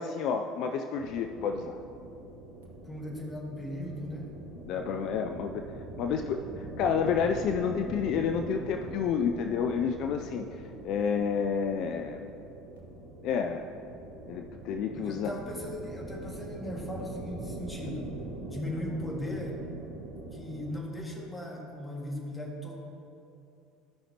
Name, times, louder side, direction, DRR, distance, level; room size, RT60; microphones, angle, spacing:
voice 1, 0.0-1.8 4.6-5.6 6.0-10.4 10.8-12.3 13.2-13.7 14.3-15.3, left 6 dB, 60° left, 5 dB, 0.4 m, -30 dB
sound 1, 0.9-20.8, right 2 dB, 85° right, 1.5 m, -43 dB
voice 2, 2.9-4.3 14.9-18.1 18.5-19.6 20.0-22.8, left 1 dB, 15° left, -1 dB, 1.9 m, -38 dB
14.5 x 5.7 x 2.9 m, 2.7 s
hypercardioid pair, 75°, 0 cm